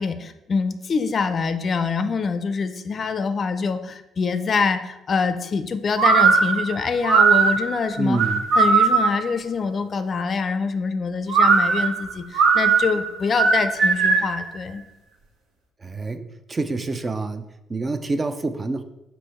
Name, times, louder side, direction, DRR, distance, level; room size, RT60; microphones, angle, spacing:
voice 1, 0.0-8.2 8.5-14.8, left 5 dB, 45° left, 9 dB, 0.4 m, -25 dB
sound 1, 6.0-9.3 11.3-14.4, right 5 dB, 70° right, 0.7 m, -18 dB
voice 2, 8.0-8.5 15.8-18.8, right 3 dB, 30° right, 8 dB, 0.4 m, -27 dB
4.6 x 2.7 x 4.2 m, 0.92 s
supercardioid pair, 65°, 0 cm